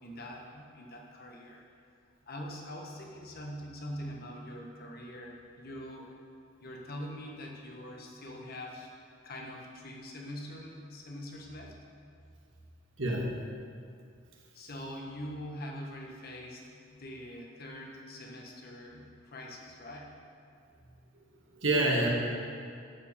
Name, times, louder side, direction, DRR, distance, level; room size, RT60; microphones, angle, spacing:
voice 1, 0.0-1.6 2.3-6.1 6.6-8.9 9.2-11.8 14.5-20.2, equal, 50° left, -1 dB, 1.4 m, -43 dB
voice 2, 13.0-13.3 21.1-21.2 21.5-22.1, right 1 dB, 65° right, -2 dB, 1.7 m, -27 dB
10.5 x 5.7 x 6.9 m, 2.4 s
head